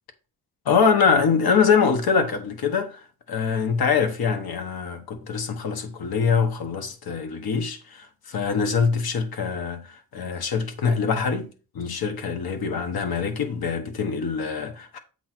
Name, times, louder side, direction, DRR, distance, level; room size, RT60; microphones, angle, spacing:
voice 1, 0.6-15.0, left 6 dB, 80° left, 1.2 m, -24 dB
7.7 x 3.1 x 5.9 m
wide cardioid pair, 175°, 36 cm